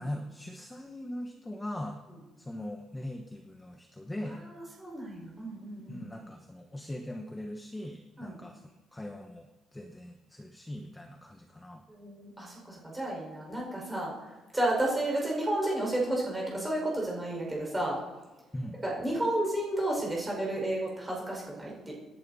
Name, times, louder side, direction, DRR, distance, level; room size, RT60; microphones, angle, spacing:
voice 1, 0.0-2.0 2.4-4.5 5.9-11.8 18.5-18.8, left 1 dB, 10° left, 4 dB, 1.1 m, -40 dB
voice 2, 4.4-6.0 8.2-8.4 11.9-14.1 14.5-18.0 18.8-21.9, right 1 dB, 10° right, -3 dB, 5.1 m, -32 dB
27.0 x 10.5 x 4.2 m, 1.1 s
cardioid pair, 165°, 0 cm